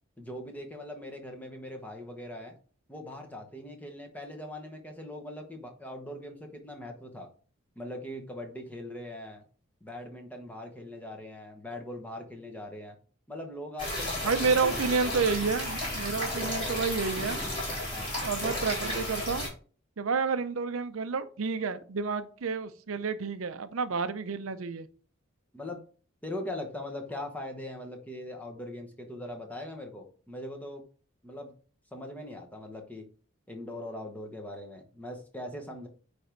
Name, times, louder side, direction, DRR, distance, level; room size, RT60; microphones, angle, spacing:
voice 1, 0.2-2.5 2.9-7.3 7.8-9.4 9.8-13.0 13.3-14.3 14.7-14.8 17.9-18.2 25.5-25.8 26.2-30.8 31.2-31.5 31.9-33.0 33.5-35.9, left 1 dB, 5° left, 1.1 m, -41 dB
sound 1, 13.8-19.5, left 1 dB, 25° left, 3.7 m, -33 dB
voice 2, 14.2-17.4 18.2-19.5 20.0-24.9, right 5 dB, 80° right, 0.6 m, -30 dB
9.3 x 3.4 x 3.9 m
head